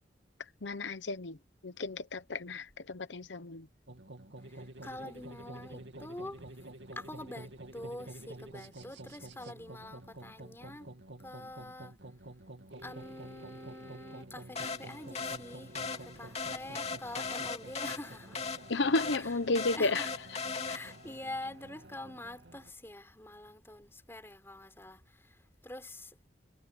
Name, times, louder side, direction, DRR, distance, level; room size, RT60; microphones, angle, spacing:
voice 1, 0.6-1.4 1.6-3.7 18.7-20.1, left 3 dB, 85° left, 0.9 m, -32 dB
sound 1, 3.9-22.7, right 1 dB, 80° right, 2.6 m, -49 dB
voice 2, 4.5-6.4 7.0-10.9 11.2-12.0 12.8-18.4 19.2-19.3 19.7-20.1 20.7-26.3, left 1 dB, 15° left, 4.0 m, -46 dB
sound 2, 14.6-21.2, left 5 dB, 35° left, 2.7 m, -39 dB
head